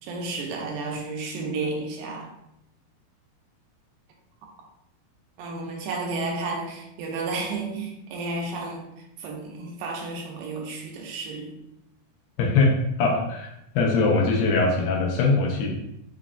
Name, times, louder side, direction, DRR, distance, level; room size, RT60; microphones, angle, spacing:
voice 1, 0.0-2.4 5.4-11.6, right 3 dB, 85° right, 0 dB, 2.4 m, -32 dB
voice 2, 12.4-13.5 13.8-15.7, left 3 dB, 80° left, 0 dB, 2.3 m, -22 dB
7.1 x 2.4 x 2.3 m, 0.84 s
omnidirectional pair, 4.2 m